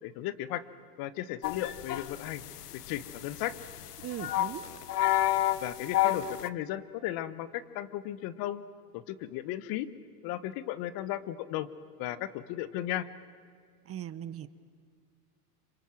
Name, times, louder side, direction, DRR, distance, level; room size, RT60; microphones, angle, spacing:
voice 1, 0.0-0.6 1.0-2.4 2.9-3.6 5.6-8.6 8.9-9.9 10.2-11.7 12.0-13.1, left 13 dB, 50° left, 15 dB, 1.4 m, -35 dB
sound 1, 1.4-6.5, left 13 dB, 90° left, 1.0 m, -31 dB
voice 2, 4.0-4.6 13.9-14.5, right 11 dB, 30° right, 15 dB, 1.0 m, -39 dB
26.5 x 24.0 x 7.7 m, 2.2 s
hypercardioid pair, 100°, 45 cm